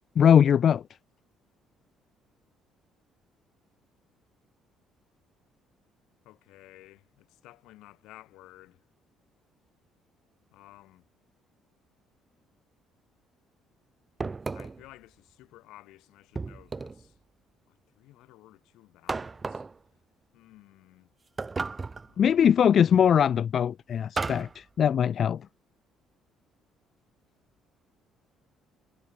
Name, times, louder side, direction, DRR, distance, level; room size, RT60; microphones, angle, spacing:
voice 1, 0.2-0.8 22.2-25.4, left 8 dB, 35° left, 0.5 m, -21 dB
voice 2, 6.2-8.8 10.5-11.0 14.5-17.1 17.7-19.6 20.3-21.1 22.1-22.6, left 17 dB, 75° left, 6.5 m, -54 dB
sound 1, 14.2-14.9 16.4-17.1 19.1-19.8 21.4-22.1 24.2-24.6, right 4 dB, 15° right, 2.1 m, -34 dB
cardioid pair, 180°, 0 cm